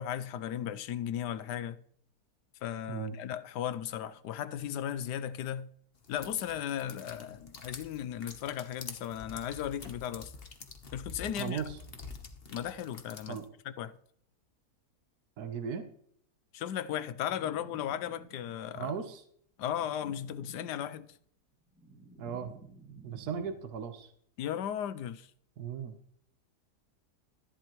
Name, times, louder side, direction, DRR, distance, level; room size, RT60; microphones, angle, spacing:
voice 1, 0.0-1.8 2.6-5.7 6.1-10.3 10.9-11.6 12.5-13.4 13.8-13.9 16.5-18.9 19.6-21.1 24.4-25.3, left 10 dB, 85° left, 1.3 m, -36 dB
sound 1, 6.0-13.5, left 4 dB, 40° left, 1.2 m, -47 dB
voice 2, 11.4-11.8 13.3-13.5 15.4-15.9 18.7-19.2 22.2-22.5 23.0-24.1 25.6-25.9, right 7 dB, 70° right, 1.5 m, -37 dB
sound 2, 17.1-18.7 19.7-21.1 21.5-23.9, right 3 dB, 5° right, 2.2 m, -53 dB
14.0 x 11.0 x 3.1 m
omnidirectional pair, 1.8 m